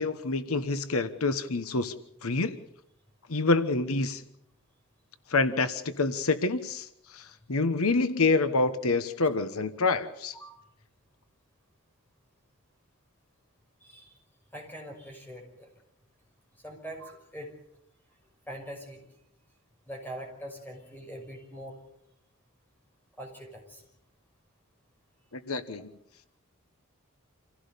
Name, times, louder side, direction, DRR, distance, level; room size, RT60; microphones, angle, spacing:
voice 1, 0.0-1.9 2.2-2.6 3.3-4.2 5.3-10.3 25.3-25.9, left 3 dB, 85° left, 11 dB, 1.2 m, -27 dB
voice 2, 13.8-14.2 14.5-15.7 16.6-17.5 18.5-19.0 19.9-21.8 23.2-23.8, right 1 dB, 10° left, 2 dB, 5.7 m, -43 dB
27.0 x 16.0 x 6.9 m, 0.76 s
head